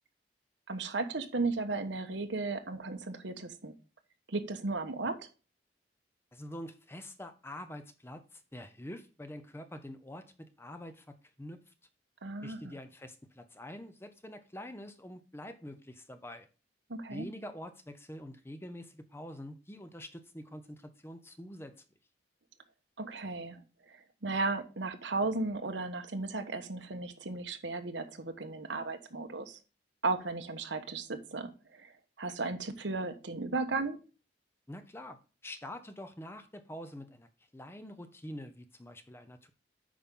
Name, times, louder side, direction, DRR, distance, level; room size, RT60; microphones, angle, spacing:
voice 1, 0.7-3.7 4.3-5.2 12.2-12.8 16.9-17.3 23.0-23.6 23.9-29.6 30.0-34.0, right 3 dB, 85° right, 1.2 m, -35 dB
voice 2, 6.3-11.6 12.4-16.5 17.1-21.7 34.7-35.2 35.4-37.3 37.5-39.5, left 1 dB, 15° left, 0.7 m, -46 dB
8.6 x 5.5 x 3.7 m
head